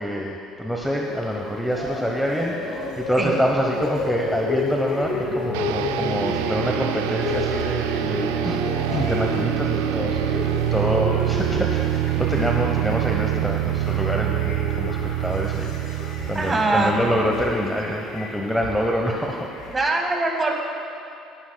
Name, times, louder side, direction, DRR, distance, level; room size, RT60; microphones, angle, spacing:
voice 1, 0.0-8.6 8.9-16.0 16.3-19.5, equal, ahead, 0 dB, 1.0 m, -26 dB
sound 1, 0.8-19.7, left 3 dB, 65° left, 2.8 m, -32 dB
sound 2, 5.5-17.7, right 15 dB, 85° right, 0.3 m, -25 dB
voice 2, 16.3-17.0 19.7-20.5, right 2 dB, 25° right, 2 dB, 1.9 m, -22 dB
16.5 x 11.0 x 2.3 m, 2.7 s
supercardioid pair, 75°, 0 cm